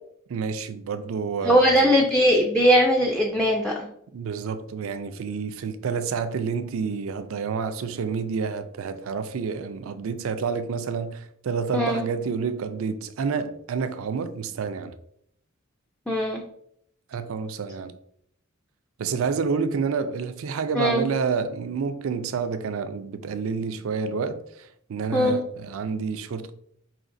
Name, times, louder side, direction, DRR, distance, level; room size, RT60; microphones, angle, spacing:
voice 1, 0.3-2.0 4.1-14.9 17.1-17.9 19.0-26.5, right 5 dB, 70° right, 0.4 m, -29 dB
voice 2, 1.4-3.9 11.7-12.0 16.1-16.4 20.8-21.1 25.1-25.4, equal, 5° left, 0.4 m, -20 dB
5.1 x 2.8 x 2.5 m
head